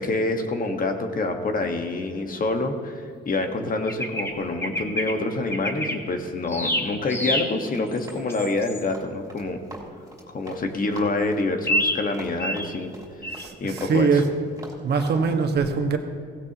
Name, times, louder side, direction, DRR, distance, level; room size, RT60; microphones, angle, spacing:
voice 1, 0.0-9.7 10.3-12.9 13.2-13.3 13.6-14.2, left 2 dB, 45° left, 5 dB, 1.5 m, -27 dB
sound 1, 3.9-4.3 4.6-5.1 5.5-6.0 6.5-7.5 8.0-8.8 11.6-12.0 12.4-12.7 13.2-13.4, equal, 10° left, 1.8 m, -27 dB
Run, 7.3-10.6 10.9-15.2, right 1 dB, 15° right, 4.3 m, -42 dB
voice 2, 13.3-14.3 14.8-16.0, right 5 dB, 55° right, 4 dB, 1.6 m, -22 dB
17.0 x 16.5 x 3.0 m, 2.2 s
cardioid pair, 90°, 20 cm